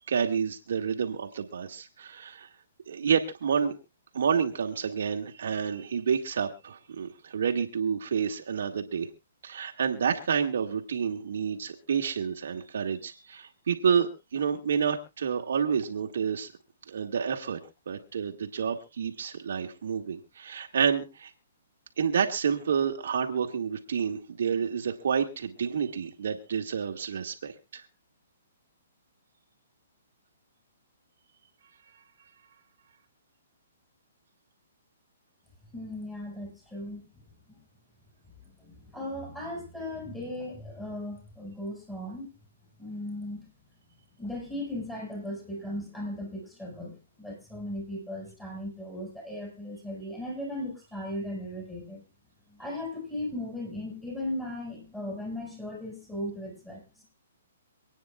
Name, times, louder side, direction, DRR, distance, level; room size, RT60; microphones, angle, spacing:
voice 1, 0.1-2.5 2.9-3.8 4.1-9.1 9.4-16.5 16.9-17.6 17.9-21.3 22.0-27.8, right 7 dB, 70° right, 2 dB, 2.0 m, -29 dB
voice 2, 35.7-37.1 37.5-37.6 38.4-42.3 42.8-43.4 44.2-52.0 52.5-57.0, left 1 dB, 5° left, -2 dB, 6.1 m, -37 dB
28.0 x 9.4 x 2.4 m, 0.27 s
hypercardioid pair, 160°, 0 cm